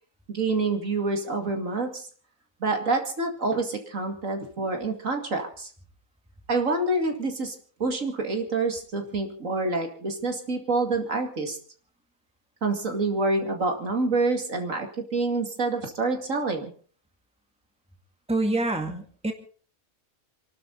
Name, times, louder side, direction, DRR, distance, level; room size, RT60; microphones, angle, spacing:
voice 1, 0.3-2.1 2.6-5.7 6.5-7.5 7.8-11.6 12.6-16.7, right 3 dB, 65° right, 3 dB, 2.8 m, -27 dB
voice 2, 18.3-19.3, right 2 dB, 5° right, 4 dB, 2.1 m, -26 dB
28.0 x 12.0 x 4.1 m, 0.43 s
omnidirectional pair, 1.5 m